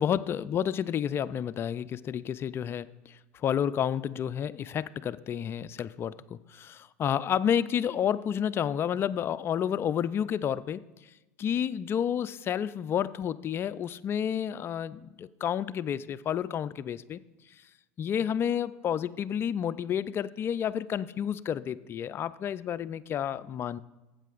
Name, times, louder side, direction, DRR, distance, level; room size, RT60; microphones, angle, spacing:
voice 1, 0.0-10.8 11.4-17.2 18.0-23.8, left 9 dB, 30° left, 16 dB, 0.3 m, -30 dB
15.0 x 8.3 x 2.5 m, 1.1 s
hypercardioid pair, 100°, 7 cm